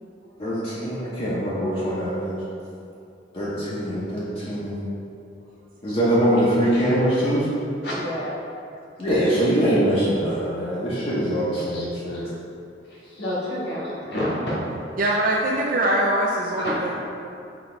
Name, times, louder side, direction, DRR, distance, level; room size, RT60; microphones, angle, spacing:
voice 1, 0.4-2.4 3.3-4.9 5.8-7.5 9.0-12.2, equal, 30° left, -8 dB, 0.6 m, -23 dB
voice 2, 7.8-8.4 11.7-11.9 12.1-12.3 12.9-14.5 16.6-16.7, equal, 60° left, -6 dB, 1.1 m, -29 dB
voice 3, 15.0-16.9, right 1 dB, 45° right, -3 dB, 0.3 m, -22 dB
4.0 x 2.8 x 4.3 m, 2.6 s
head